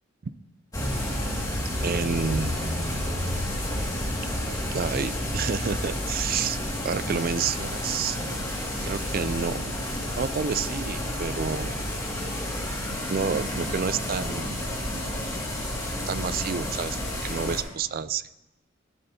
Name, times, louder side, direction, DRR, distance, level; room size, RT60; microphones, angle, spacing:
sound 1, 0.7-17.6, left 1 dB, 15° left, 2.1 m, -30 dB
voice 1, 1.8-2.5 4.7-8.2 8.8-9.7 10.2-11.8 13.1-14.5 16.1-18.3, right 6 dB, 45° right, 15 dB, 0.4 m, -29 dB
13.5 x 11.0 x 2.8 m, 0.98 s
head